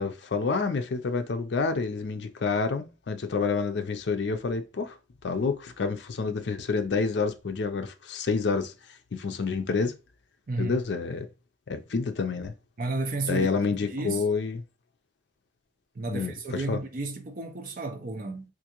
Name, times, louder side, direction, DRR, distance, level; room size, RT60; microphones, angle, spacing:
voice 1, 0.0-5.0 5.2-8.7 9.1-10.0 10.6-11.3 11.7-12.5 13.3-14.6 16.1-16.8, left 4 dB, 65° left, 0.4 m, -28 dB
voice 2, 10.5-10.8 12.8-13.5 13.9-14.3 15.9-18.4, right 2 dB, 50° right, 0.6 m, -32 dB
3.6 x 2.5 x 2.9 m
head